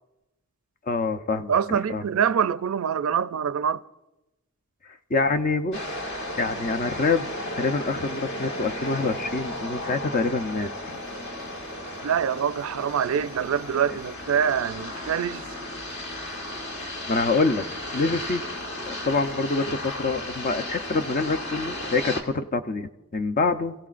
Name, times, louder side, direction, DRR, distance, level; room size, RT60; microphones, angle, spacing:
voice 1, 0.9-2.0 5.1-6.0 6.4-11.0 13.9-14.0 16.8-17.6 17.9-18.4 18.8-23.7, left 3 dB, 40° left, 0.7 m, -26 dB
voice 2, 1.5-3.8 12.0-15.5, right 7 dB, 75° right, 0.4 m, -25 dB
sound 1, 5.7-22.2, left 1 dB, 55° left, 1.8 m, -34 dB
29.5 x 16.0 x 2.5 m
head